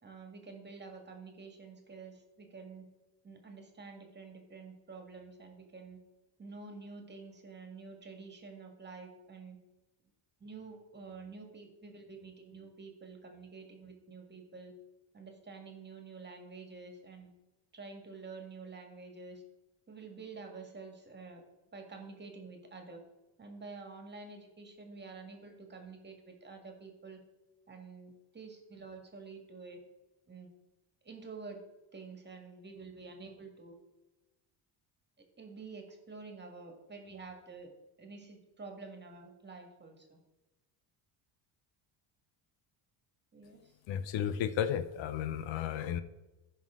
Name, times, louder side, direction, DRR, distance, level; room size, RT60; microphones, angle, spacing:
voice 1, 0.0-2.9 3.2-6.0 6.4-9.6 10.4-14.7 15.1-17.3 17.7-19.4 19.9-21.4 21.7-23.0 23.4-27.2 27.7-29.8 30.3-30.5 31.0-31.6 31.9-33.8 35.4-37.7 38.0-40.2 43.3-43.7, right 4 dB, 20° right, 4 dB, 1.9 m, -49 dB
voice 2, 43.9-46.0, left 9 dB, 70° left, 12 dB, 0.8 m, -33 dB
14.5 x 5.6 x 3.7 m, 1.0 s
cardioid pair, 120°, 47 cm